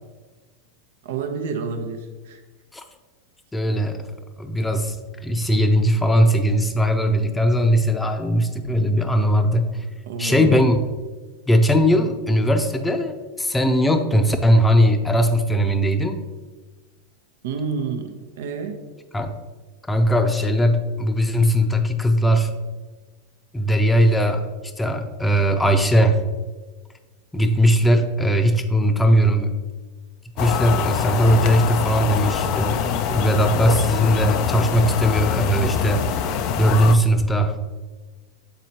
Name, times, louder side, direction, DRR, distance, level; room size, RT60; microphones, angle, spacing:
voice 1, 1.0-2.4 10.1-10.6 17.4-18.8, right 5 dB, 70° right, 5 dB, 0.8 m, -29 dB
voice 2, 3.5-4.1 4.4-5.0 5.2-9.9 10.2-10.8 11.5-16.2 19.1-19.4 19.9-22.5 23.5-26.2 27.3-29.6 30.4-36.1 36.6-37.6, equal, 10° left, 6 dB, 0.7 m, -19 dB
sound 1, 30.4-37.0, left 8 dB, 50° left, 0.4 m, -24 dB
7.9 x 4.2 x 2.9 m, 1.3 s
hypercardioid pair, 100°, 0 cm